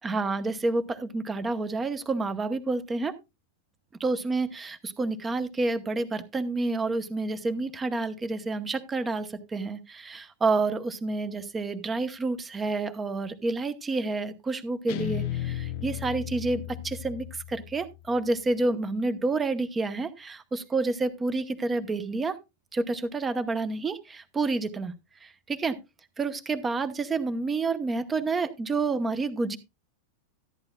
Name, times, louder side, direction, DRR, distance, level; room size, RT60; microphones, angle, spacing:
voice 1, 0.0-3.1 4.0-22.4 22.7-24.9 25.2-25.8 26.2-29.6, right 3 dB, 15° right, 12 dB, 0.9 m, -29 dB
Guitar, 14.9-18.1, left 13 dB, 45° left, 0.5 m, -35 dB
13.5 x 9.6 x 2.3 m, 0.24 s
figure-of-eight pair, 90°, 0 cm